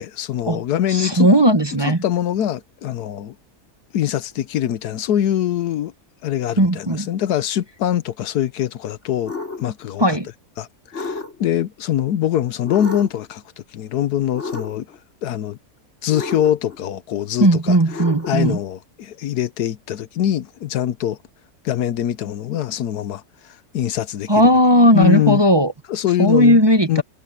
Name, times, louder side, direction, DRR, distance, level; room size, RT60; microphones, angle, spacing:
voice 1, 0.0-1.3 1.8-3.4 3.9-5.9 6.2-9.3 9.6-10.0 10.6-10.7 10.9-13.4 13.7-14.9 15.2-15.6 16.0-17.8 18.3-21.2 21.6-24.3 24.9-25.4 25.9-26.6 26.9-27.0, left 11 dB, 85° left, 1.3 m, -23 dB
voice 2, 0.9-2.0 6.6-7.1 10.0-10.3 17.4-18.6 24.3-25.7 26.2-27.0, equal, 20° right, 1.1 m, -16 dB
sound 1, 9.2-9.7 10.9-11.6 12.6-13.3 14.3-15.0 16.1-16.8 17.9-18.5, left 3 dB, 45° left, 3.9 m, -31 dB
omnidirectional pair, 1.6 m